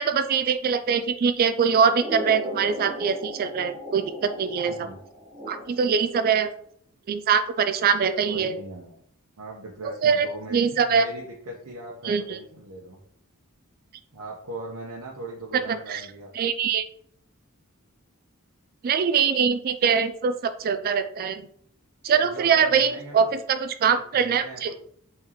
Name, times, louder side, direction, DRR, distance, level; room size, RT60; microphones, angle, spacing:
voice 1, 0.0-4.9 5.5-6.5 7.1-8.5 10.0-10.3 10.5-11.1 12.0-12.4 15.7-16.0 16.4-16.8 18.8-21.5 22.0-24.7, right 6 dB, 40° right, 10 dB, 0.3 m, -23 dB
sound 1, 2.0-6.0, equal, 15° right, 0.8 m, -36 dB
voice 2, 4.6-5.0 8.2-9.0 9.4-13.0 14.1-16.3 22.1-23.3 23.9-24.8, right 2 dB, 80° right, -3 dB, 0.9 m, -39 dB
4.2 x 3.9 x 3.0 m, 0.62 s
head